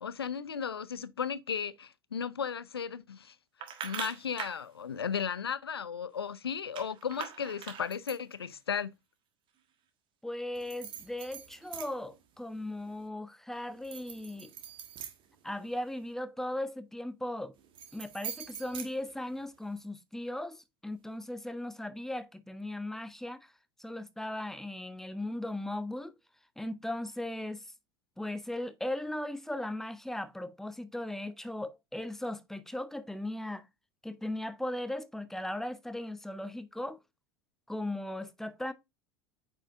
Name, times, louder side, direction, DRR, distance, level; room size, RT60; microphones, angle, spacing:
voice 1, 0.0-3.3 3.8-8.9, left 7 dB, 80° left, 0.5 m, -35 dB
sound 1, 3.6-4.6 6.7-8.3 10.5-12.2 12.5-13.0 13.7-16.0 17.6-19.6, right 8 dB, 40° right, 1.4 m, -43 dB
voice 2, 10.2-14.5 15.4-17.5 17.9-23.5 23.8-26.2 26.6-27.6 28.2-33.7 34.0-37.0 37.7-38.7, left 1 dB, 5° left, 0.8 m, -37 dB
8.8 x 5.0 x 2.4 m
figure-of-eight pair, 75°, 13 cm